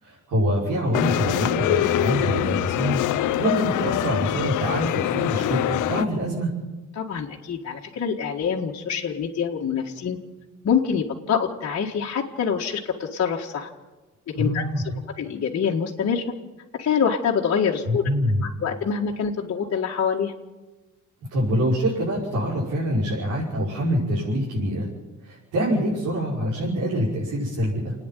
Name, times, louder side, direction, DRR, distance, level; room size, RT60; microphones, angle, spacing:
voice 1, 0.0-6.5 14.3-14.8 17.9-18.4 21.3-24.9 25.2-27.9, equal, 85° right, -6 dB, 5.8 m, -25 dB
sound 1, 0.9-6.0, left 13 dB, 90° left, 0.8 m, -24 dB
voice 2, 6.9-10.2 10.6-13.7 14.3-14.9 15.2-16.2 16.7-18.0 18.4-20.3, left 7 dB, 55° left, -2 dB, 1.8 m, -25 dB
29.0 x 9.8 x 9.3 m, 1.2 s
cardioid pair, 90°, 30 cm